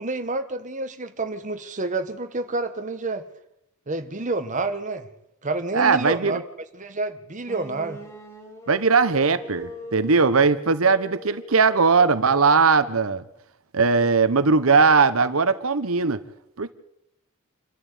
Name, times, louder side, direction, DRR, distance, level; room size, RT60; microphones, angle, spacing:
voice 1, 0.0-3.3 3.9-5.1 5.4-6.4 6.7-8.0, right 3 dB, 35° right, 7 dB, 1.5 m, -29 dB
voice 2, 5.7-6.3 8.7-13.2 13.7-16.2 16.6-16.7, right 4 dB, 85° right, 12 dB, 1.1 m, -19 dB
sound 1, 7.4-13.3, left 1 dB, 15° left, 4.2 m, -42 dB
27.5 x 12.5 x 8.3 m, 0.83 s
head